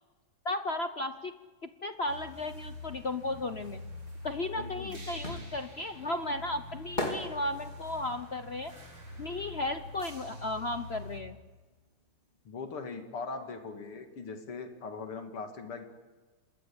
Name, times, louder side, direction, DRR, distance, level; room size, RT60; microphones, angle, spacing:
voice 1, 0.4-1.3 1.6-3.8 4.2-8.7 9.2-11.4, left 2 dB, 55° left, 9 dB, 0.7 m, -35 dB
sound 1, 2.1-11.2, left 2 dB, 75° right, 6.3 m, -45 dB
voice 2, 4.6-5.2 12.4-15.8, left 4 dB, 80° left, 5 dB, 3.3 m, -40 dB
sound 2, 5.2-10.2 10.5-12.1 12.3-12.4, left 1 dB, 20° left, 4.4 m, -40 dB
27.5 x 21.5 x 8.8 m, 1.3 s
omnidirectional pair, 2.4 m